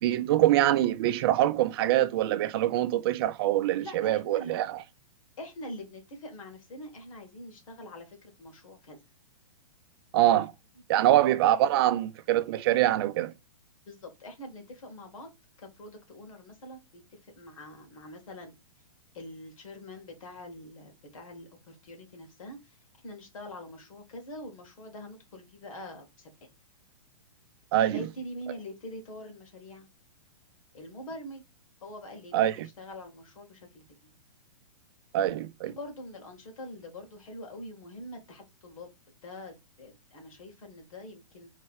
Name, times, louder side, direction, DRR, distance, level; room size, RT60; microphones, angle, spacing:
voice 1, 0.0-4.8 10.1-10.5 10.9-13.3 27.7-28.0 32.3-32.7 35.1-35.7, right 13 dB, 45° right, 0.5 m, -24 dB
voice 2, 3.8-4.6 5.4-9.0 10.9-12.0 13.9-15.3 15.6-18.5 19.1-22.8 23.0-26.3 27.9-29.9 30.7-31.4 31.8-34.1 35.6-38.9 39.2-41.5, left 1 dB, 75° left, 2.0 m, -44 dB
3.7 x 3.1 x 4.7 m
hypercardioid pair, 145°, 18 cm